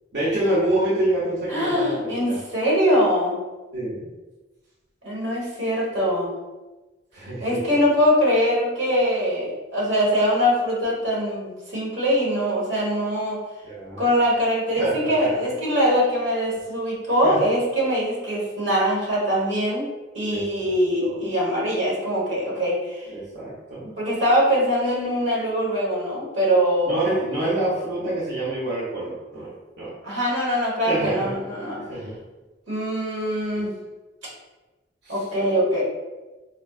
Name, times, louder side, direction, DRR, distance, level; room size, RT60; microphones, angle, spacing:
voice 1, 0.1-2.4 3.7-4.1 7.1-7.6 13.6-14.0 14.8-15.3 17.2-17.4 20.3-20.7 21.0-21.2 23.1-23.9 26.8-29.9 30.8-31.3 31.9-32.1 35.0-35.2, right 1 dB, 65° right, -8 dB, 0.8 m, -27 dB
voice 2, 1.5-3.4 5.0-6.3 7.4-13.4 14.0-19.9 20.1-23.1 24.0-27.2 30.0-31.8 32.7-33.7 35.1-35.8, equal, 90° right, -5 dB, 1.3 m, -22 dB
4.3 x 2.2 x 2.4 m, 1.2 s
head